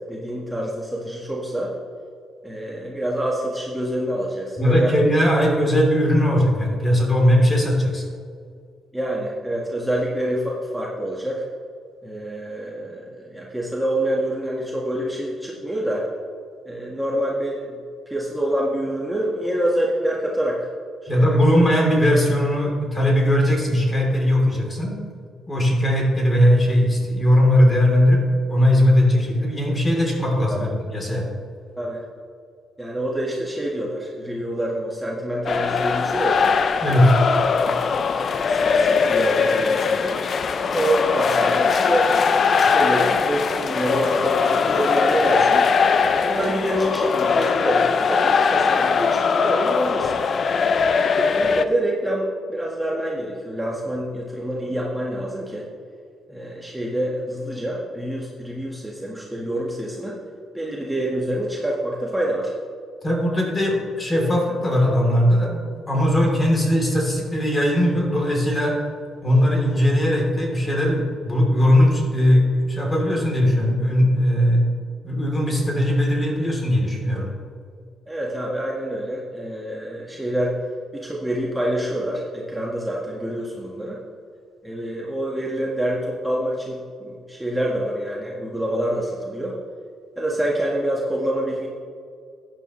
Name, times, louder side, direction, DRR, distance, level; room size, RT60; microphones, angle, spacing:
voice 1, 0.0-1.7 2.4-4.9 8.9-11.5 12.0-16.1 16.7-17.8 18.1-20.7 21.1-21.4 30.5-30.7 31.8-32.1 32.8-36.6 37.7-38.1 38.4-40.2 40.7-42.1 42.5-45.7 46.2-50.2 51.3-55.7 56.3-60.2 60.5-62.5 78.1-80.6 80.9-84.0 84.6-89.6 90.2-91.7, right 1 dB, 10° right, -4 dB, 1.6 m, -26 dB
voice 2, 4.6-8.0 21.1-24.9 25.5-28.2 28.5-31.3 36.8-37.1 63.0-68.8 69.2-74.7 75.0-77.3, equal, 25° left, -1 dB, 3.3 m, -19 dB
sound 1, 35.5-51.6, left 5 dB, 50° left, 0.6 m, -20 dB
15.0 x 9.9 x 3.2 m, 2.2 s
cardioid pair, 90°, 0 cm